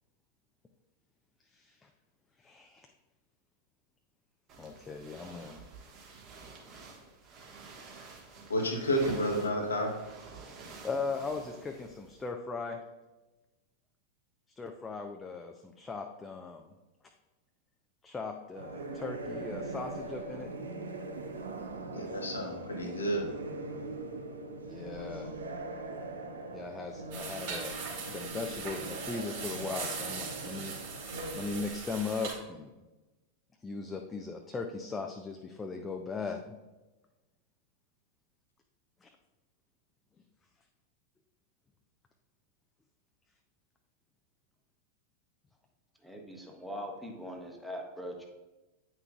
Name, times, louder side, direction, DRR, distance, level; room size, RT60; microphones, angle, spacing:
voice 1, 1.5-1.9 2.4-2.9 4.6-5.6 10.8-12.8 14.6-16.7 18.0-20.7 24.6-25.4 26.5-30.8 31.3-32.7 33.6-36.6 39.0-39.1, left 4 dB, 15° left, 3 dB, 0.5 m, -38 dB
sound 1, 4.5-12.3, right 4 dB, 35° right, 1.5 m, -49 dB
voice 2, 8.5-9.9 21.9-23.3, equal, 75° left, 1 dB, 1.1 m, -31 dB
sound 2, 18.6-31.7, right 2 dB, 70° right, 0.7 m, -41 dB
sound 3, 27.1-32.3, right 4 dB, 55° right, 2.3 m, -40 dB
voice 3, 46.0-48.3, equal, ahead, 0 dB, 1.1 m, -41 dB
9.0 x 5.9 x 2.4 m, 1.1 s
figure-of-eight pair, 90°, 0 cm